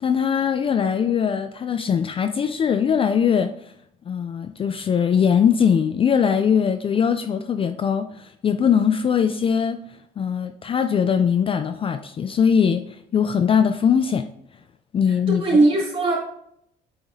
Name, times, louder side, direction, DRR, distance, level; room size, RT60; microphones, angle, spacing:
voice 1, 0.0-3.5 4.1-9.8 10.2-12.8 13.1-14.2 14.9-15.4, left 7 dB, 35° left, 0.4 m, -21 dB
voice 2, 15.1-16.2, right 2 dB, 35° right, 2.8 m, -19 dB
8.6 x 4.9 x 2.7 m
cardioid pair, 110°, 17 cm